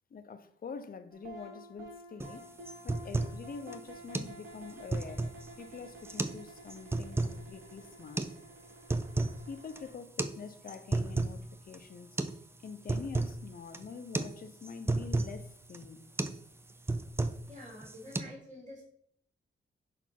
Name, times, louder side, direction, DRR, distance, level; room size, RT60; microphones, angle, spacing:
voice 1, 0.1-2.5 2.8-5.3 5.6-8.3 9.5-12.2 12.6-16.0, left 5 dB, 45° left, 0.6 m, -45 dB
sound 1, 1.1-9.9, right 1 dB, 75° right, 1.6 m, -51 dB
sound 2, 2.2-2.3 2.7-3.4 3.7-3.8 4.1-4.3 4.7-5.5 6.0-6.4 6.7-7.4 8.2-8.3 8.7-9.4 9.7-9.8 10.2-10.4 10.7-11.4 11.7-11.8 12.2-12.4 12.7-13.4 13.7-13.9 14.1-14.3 14.6-15.3 15.7-15.9 16.2-16.4 16.7-17.5 17.8-18.2, right 2 dB, 10° right, 0.3 m, -32 dB
voice 2, 17.5-18.8, left 1 dB, 35° right, 1.9 m, -48 dB
5.0 x 4.2 x 5.8 m
wide cardioid pair, 150°, 21 cm